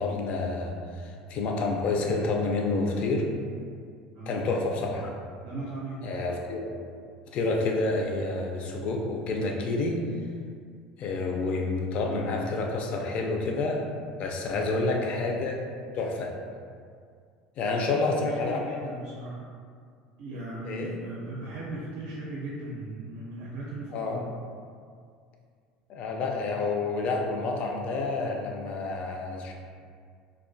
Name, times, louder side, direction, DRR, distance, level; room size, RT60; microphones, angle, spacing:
voice 1, 0.0-3.3 4.3-5.1 6.0-6.7 7.3-10.0 11.0-13.8 14.2-15.6 15.9-16.3 17.6-18.8 20.6-20.9 23.9-24.2 25.9-29.5, left 3 dB, 50° left, 1 dB, 0.4 m, -29 dB
voice 2, 4.1-4.5 5.4-6.2 14.5-14.9 17.7-19.5 20.2-24.3, right 2 dB, 65° right, -4 dB, 0.4 m, -38 dB
2.3 x 2.2 x 2.6 m, 2.2 s
supercardioid pair, 120°, 3 cm